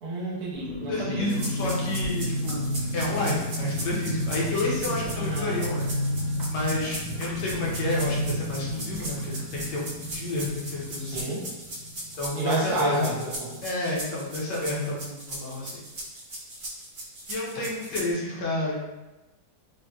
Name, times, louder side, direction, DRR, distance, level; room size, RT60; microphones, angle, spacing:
voice 1, 0.0-1.3 5.1-5.6 11.0-11.4 12.4-13.6, right 2 dB, 70° right, -4 dB, 1.1 m, -31 dB
sound 1, 0.5-12.9 13.2-13.3 13.5-13.8, left 1 dB, 50° right, 1.1 m, -31 dB
voice 2, 0.9-2.6 2.9-5.9 6.5-11.3 12.2-13.3 13.6-15.8 17.3-18.8, left 2 dB, 80° left, -5 dB, 1.4 m, -30 dB
sound 2, 1.3-18.1, right 1 dB, 90° right, 0.4 m, -39 dB
3.9 x 2.2 x 2.2 m, 1.1 s
omnidirectional pair, 1.9 m